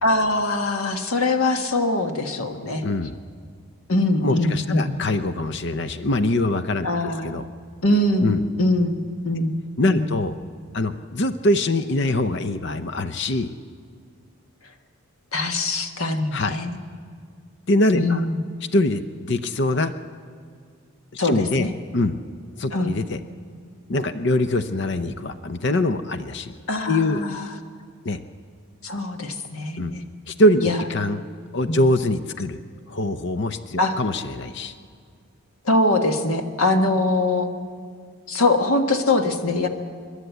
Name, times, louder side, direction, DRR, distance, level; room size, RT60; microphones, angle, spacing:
voice 1, 0.0-2.8 3.9-4.9 6.8-7.3 7.8-8.3 8.6-10.1 15.3-16.8 17.9-18.4 21.2-21.7 22.7-22.9 26.7-27.5 28.8-30.1 30.6-30.8 31.7-31.8 33.8-34.0 35.6-37.5 38.3-39.7, left 2 dB, 75° left, 5 dB, 1.5 m, -22 dB
voice 2, 2.8-3.1 4.2-6.9 7.2-7.4 8.2-8.4 9.8-10.3 10.7-13.5 16.3-16.6 17.7-18.2 18.7-19.9 21.1-22.2 22.6-23.2 23.9-26.5 26.9-27.2 28.0-28.2 29.8-29.9 30.3-31.2 31.5-32.6 32.9-34.7, left 1 dB, 50° left, 10 dB, 0.6 m, -23 dB
28.5 x 11.5 x 8.2 m, 2.1 s
head